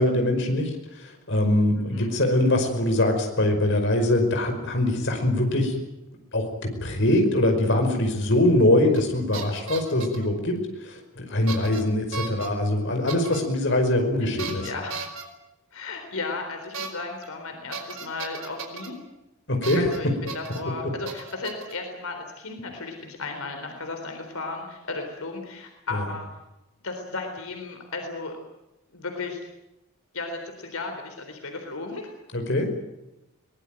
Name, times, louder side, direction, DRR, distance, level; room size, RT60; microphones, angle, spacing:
voice 1, 0.0-5.8 6.3-14.7 19.5-19.8 25.9-26.0 32.3-32.7, left 1 dB, 55° left, 4 dB, 5.3 m, -23 dB
sound 1, 8.9-9.1 9.3-10.2 11.5-11.8 12.1-12.5 13.1-13.4 14.4-15.2 16.7-16.9 17.2-17.3 17.7-18.9 19.6-20.0 20.3-20.6 21.1-21.7, right 4 dB, 65° right, 4.1 m, -35 dB
voice 2, 14.6-14.9 15.7-19.0 19.8-26.3 26.8-28.4 28.9-29.4 30.1-32.1, left 3 dB, 80° left, 4 dB, 3.9 m, -35 dB
23.0 x 19.5 x 9.1 m, 0.93 s
head